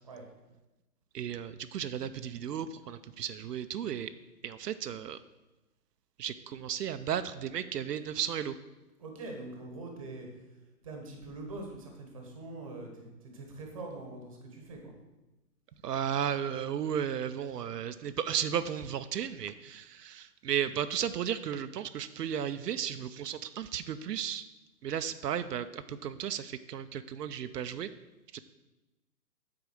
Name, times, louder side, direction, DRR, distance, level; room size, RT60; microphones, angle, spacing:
voice 1, 1.1-4.1 4.4-5.2 6.2-8.6 15.8-24.4 24.8-27.9 28.3-28.4, right 9 dB, 80° right, 11 dB, 0.6 m, -34 dB
voice 2, 9.0-10.3 10.8-14.9, right 2 dB, 20° right, 2 dB, 1.0 m, -43 dB
8.6 x 4.8 x 6.3 m, 1.0 s
hypercardioid pair, 175°, 47 cm